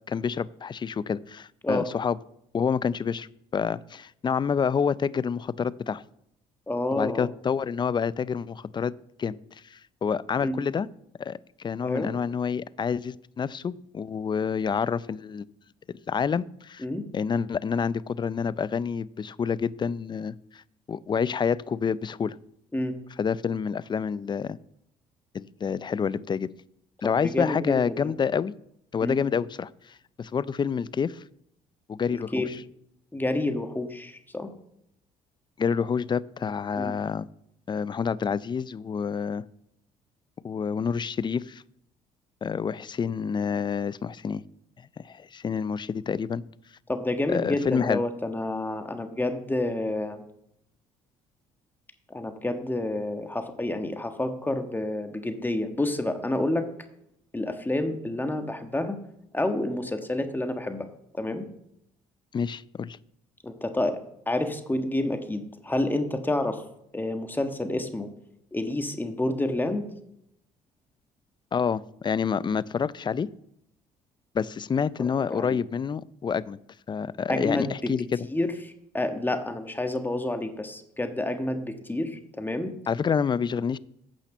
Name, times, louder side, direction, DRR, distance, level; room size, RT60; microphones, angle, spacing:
voice 1, 0.1-2.2 2.5-3.3 3.5-6.0 6.9-8.9 9.2-9.4 9.6-10.9 11.2-15.5 16.1-16.8 17.1-20.6 20.9-22.4 23.2-24.6 25.3-26.5 27.0-28.5 28.9-31.2 31.9-32.6 35.6-37.3 37.7-39.4 40.4-41.6 42.4-44.4 45.0-46.4 47.3-48.0 62.3-63.0 71.5-73.3 74.3-76.6 76.9-78.3 82.9-83.8, left 6 dB, 30° left, 19 dB, 0.5 m, -28 dB
voice 2, 6.7-7.3 10.4-10.6 11.8-12.1 16.8-17.0 22.7-23.0 27.2-28.1 29.0-29.2 32.3-32.5 33.1-34.5 36.7-36.9 46.9-50.2 52.1-56.7 57.3-59.0 59.3-60.9 61.1-61.5 63.4-64.0 64.3-66.6 66.9-68.1 68.5-69.9 75.3-75.6 77.3-77.7 78.3-78.5 78.9-82.7, left 1 dB, 10° left, 7 dB, 1.5 m, -29 dB
9.0 x 5.8 x 6.9 m, 0.76 s
supercardioid pair, 75°, 15 cm